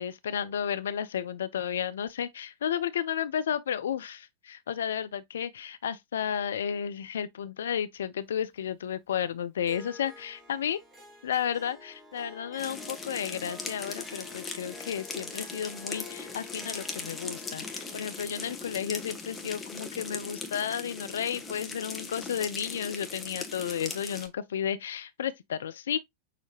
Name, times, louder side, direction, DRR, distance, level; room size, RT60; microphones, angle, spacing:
voice 1, 0.0-10.8 11.2-26.0, left 8 dB, 65° left, 0.4 m, -33 dB
Harp, 9.6-20.2, left 2 dB, 15° right, 2.1 m, -49 dB
sound 1, 12.6-24.3, left 4 dB, 15° left, 1.1 m, -39 dB
6.6 x 2.8 x 2.8 m
figure-of-eight pair, 90°, 0 cm